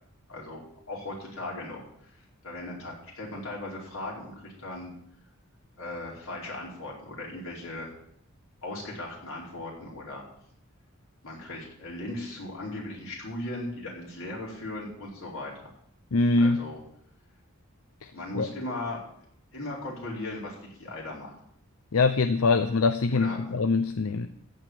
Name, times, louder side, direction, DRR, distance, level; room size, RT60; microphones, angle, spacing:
voice 1, 0.3-1.8 2.4-4.9 5.8-7.9 8.6-10.2 11.2-15.7 16.4-16.8 18.1-19.0 19.5-21.3 23.1-23.4, left 2 dB, 70° left, -4 dB, 4.8 m, -37 dB
voice 2, 16.1-16.6 18.0-18.5 21.9-24.3, left 3 dB, 90° left, 10 dB, 0.6 m, -24 dB
14.5 x 4.9 x 9.1 m, 0.70 s
head